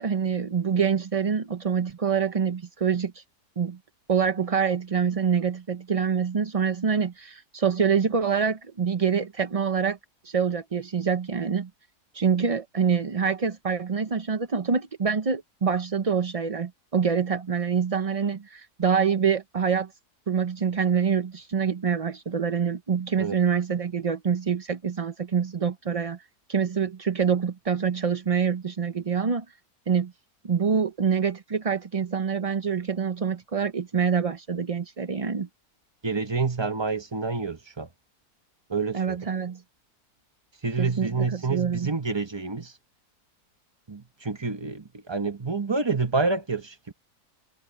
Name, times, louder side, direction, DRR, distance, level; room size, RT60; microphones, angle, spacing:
voice 1, 0.0-3.2 3.6-3.8 4.1-10.0 10.2-11.7 12.1-19.9 20.3-26.2 26.5-29.4 29.9-30.1 30.4-35.5 38.9-39.6 40.8-41.9, right 6 dB, 45° right, 0.4 m, -26 dB
voice 2, 36.0-37.9 38.7-39.2 40.6-42.7 43.9-46.9, right 4 dB, 20° right, 0.9 m, -28 dB
omnidirectional pair, 1.7 m